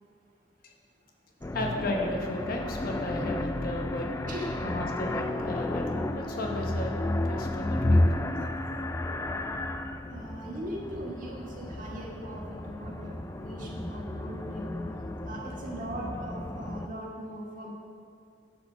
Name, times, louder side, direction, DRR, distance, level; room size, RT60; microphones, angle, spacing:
sound 1, 1.4-16.9, left 1 dB, 15° left, 0.3 m, -32 dB
voice 1, 1.5-4.1 4.6-6.9 7.2-8.0, left 1 dB, 50° left, 1 dB, 1.2 m, -34 dB
voice 2, 10.1-14.7 15.2-17.7, right 1 dB, 45° right, -2 dB, 1.7 m, -39 dB
11.0 x 5.0 x 6.7 m, 2.4 s
head